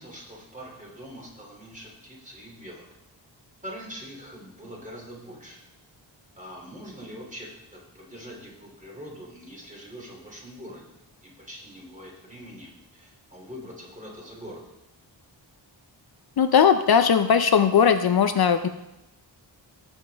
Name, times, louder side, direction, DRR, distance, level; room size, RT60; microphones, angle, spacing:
voice 1, 0.0-2.8 3.6-5.6 6.4-14.6, equal, 15° right, -2 dB, 2.7 m, -43 dB
voice 2, 16.4-18.7, left 7 dB, 55° left, 9 dB, 0.5 m, -19 dB
18.0 x 7.3 x 3.4 m, 0.93 s
wide cardioid pair, 160°, 44 cm